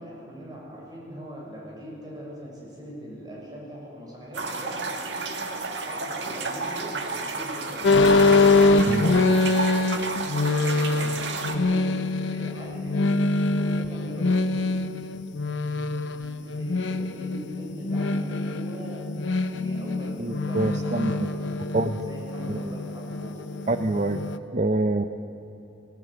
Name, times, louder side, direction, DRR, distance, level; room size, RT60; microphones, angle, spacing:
voice 1, 0.0-5.4 5.8-8.2 8.9-9.9 10.5-13.1 13.4-14.7 16.4-19.0 19.3-21.7 22.0-23.6, equal, 20° right, -3 dB, 6.7 m, -41 dB
sound 1, 4.3-11.5, right 3 dB, 70° right, 1.8 m, -32 dB
sound 2, 7.8-24.4, left 3 dB, 80° left, 0.9 m, -24 dB
voice 2, 20.2-21.1 21.7-22.1 22.5-22.8 23.7-24.2 24.5-25.1, right 2 dB, 40° right, 8 dB, 0.7 m, -26 dB
18.5 x 18.0 x 8.7 m, 2.9 s
head